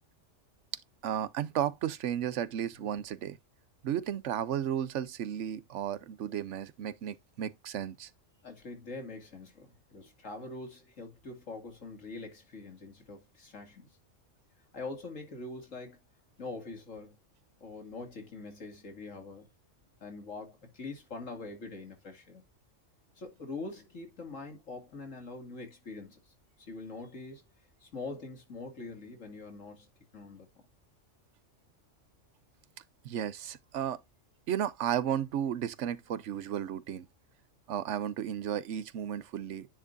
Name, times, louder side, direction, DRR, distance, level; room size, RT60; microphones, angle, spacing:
voice 1, 1.0-3.4 3.8-8.1 33.0-34.0 34.5-37.1 37.7-39.7, right 10 dB, 70° right, 1.0 m, -33 dB
voice 2, 8.4-13.9 14.7-16.0 16.4-17.2 17.6-19.5 20.0-22.4 23.2-27.5 27.8-29.9 30.1-30.5, left 3 dB, 90° left, 2.7 m, -44 dB
10.0 x 4.8 x 2.6 m
omnidirectional pair, 1.3 m